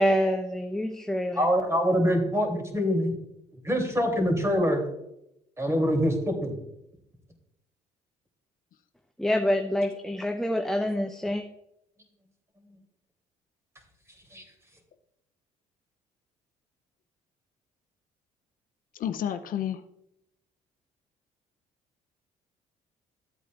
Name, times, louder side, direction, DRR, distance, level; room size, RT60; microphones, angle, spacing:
voice 1, 0.0-1.5 9.2-11.4, equal, ahead, 4 dB, 0.7 m, -26 dB
voice 2, 1.4-3.2 3.6-4.8 5.6-6.5 14.3-14.4, equal, 15° right, 3 dB, 2.9 m, -24 dB
voice 3, 18.9-19.8, left 10 dB, 60° left, 9 dB, 0.6 m, -30 dB
13.5 x 8.2 x 2.4 m, 0.82 s
hypercardioid pair, 60°, 16 cm